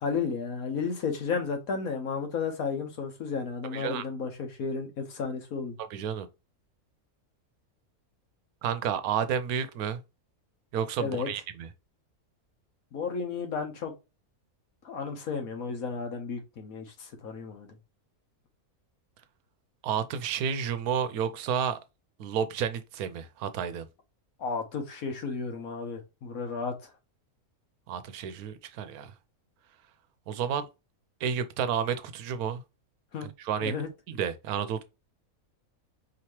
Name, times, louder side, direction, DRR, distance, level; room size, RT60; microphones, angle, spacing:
voice 1, 0.0-5.8 11.0-11.3 12.9-13.9 14.8-17.7 24.4-26.7 33.1-33.3 33.6-33.9, left 5 dB, 75° left, 1.5 m, -33 dB
voice 2, 3.7-4.0 5.9-6.3 8.6-10.0 10.7-11.7 19.8-21.8 22.2-23.9 27.9-29.1 30.3-30.7 31.2-32.6 33.2-33.7 34.1-34.8, right 7 dB, 85° right, 1.1 m, -31 dB
4.7 x 2.9 x 3.0 m
omnidirectional pair, 1.5 m